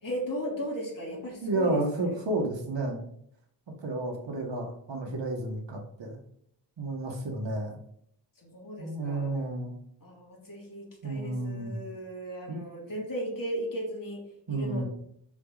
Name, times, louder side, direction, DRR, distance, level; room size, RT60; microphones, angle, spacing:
voice 1, 0.0-2.2 8.4-9.3 10.0-14.2 14.5-14.9, equal, 50° left, -2 dB, 3.2 m, -36 dB
voice 2, 1.4-3.0 3.8-6.2 6.8-7.8 8.8-9.7 11.0-11.8 12.5-12.6 14.5-14.8, right 2 dB, 80° right, 1 dB, 2.1 m, -31 dB
7.1 x 6.4 x 4.3 m, 0.68 s
wide cardioid pair, 130°, 43 cm